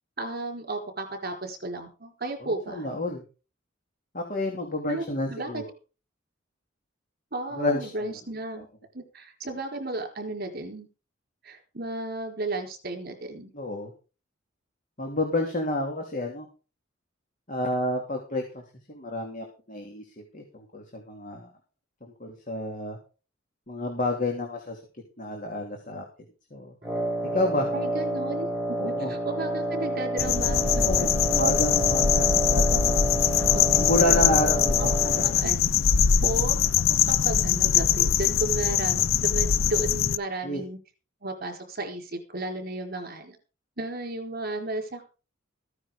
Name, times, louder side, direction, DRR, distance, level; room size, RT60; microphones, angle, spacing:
voice 1, 0.2-2.9 4.9-5.6 7.3-8.7 8.9-10.9 11.4-13.5 27.7-31.1 33.5-34.2 34.8-35.7 36.2-40.8 41.2-43.4 43.8-45.0, right 2 dB, 50° right, 4 dB, 4.5 m, -34 dB
voice 2, 2.4-3.2 4.1-5.6 7.6-8.2 13.5-13.9 15.0-16.5 17.5-18.6 18.9-20.1 20.3-21.5 22.0-23.0 23.7-24.8 25.2-26.0 26.5-26.7 27.3-27.7 28.8-29.1 30.8-33.0 33.7-34.9 40.4-40.6, left 1 dB, 40° left, 2 dB, 3.1 m, -29 dB
Wind instrument woodwind instrument, 26.8-35.4, right 1 dB, 5° right, 5.0 m, -29 dB
sound 1, 30.2-40.2, left 8 dB, 90° left, 0.6 m, -22 dB
15.5 x 9.8 x 5.2 m, 0.34 s
head